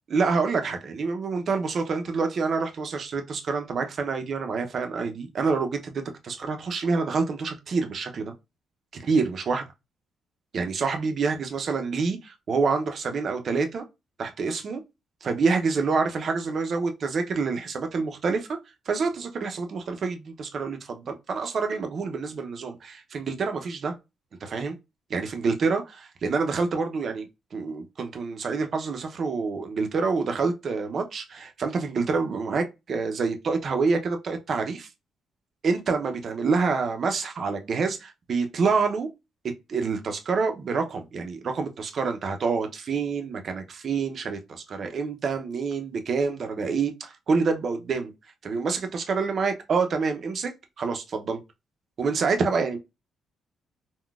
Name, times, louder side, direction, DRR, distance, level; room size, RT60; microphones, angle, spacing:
voice 1, 0.1-8.3 9.0-9.6 10.5-13.8 14.2-14.8 15.2-18.5 18.9-23.9 24.4-24.8 25.1-34.9 35.6-39.1 39.7-48.1 48.4-50.5 50.8-51.4 52.0-52.8, right 4 dB, 50° right, 0.6 m, -27 dB
3.8 x 2.2 x 2.3 m
cardioid pair, 90°, 0 cm